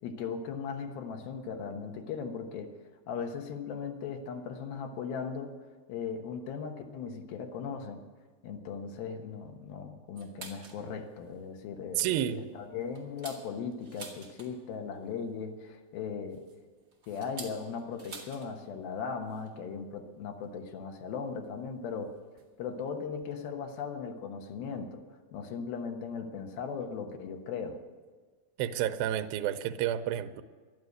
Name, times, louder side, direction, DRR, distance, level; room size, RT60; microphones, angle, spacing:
voice 1, 0.0-2.7 3.1-5.5 5.9-8.0 8.4-12.2 12.5-16.5 17.1-22.2 22.6-25.1 25.3-27.8, left 6 dB, 80° left, 4 dB, 3.1 m, -38 dB
sound 1, 10.2-10.8 11.3-11.4 11.8-12.0 12.5-14.8 15.9-18.5 18.8-18.9 19.2-19.5 20.4-20.5 21.4-21.5 22.4-22.5 22.9-23.0 23.1-23.3, right 4 dB, 30° right, 2.2 m, -48 dB
voice 2, 12.0-12.5 28.6-30.4, right 11 dB, 80° right, 7 dB, 2.4 m, -30 dB
12.5 x 11.5 x 7.9 m, 1.4 s
omnidirectional pair, 4.3 m